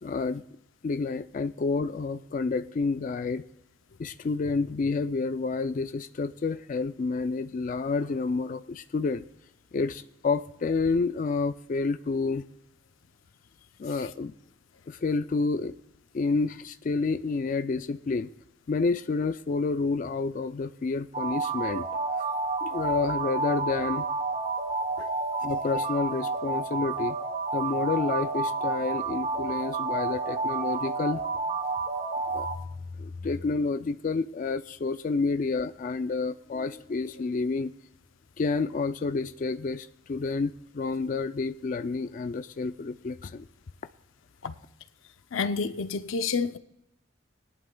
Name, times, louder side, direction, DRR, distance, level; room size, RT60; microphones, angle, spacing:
voice 1, 0.0-0.4 0.8-3.4 4.0-9.2 9.7-12.5 13.8-14.3 14.9-15.7 16.1-18.3 18.7-21.9 22.6-24.1 25.4-27.2 27.5-31.2 32.3-32.5 33.0-37.7 38.4-43.5, left 4 dB, 40° left, 0.3 m, -29 dB
sound 1, 21.1-32.5, right 3 dB, 35° right, 0.8 m, -30 dB
voice 2, 45.3-46.6, left 5 dB, 90° left, 0.6 m, -29 dB
20.5 x 11.5 x 2.2 m
head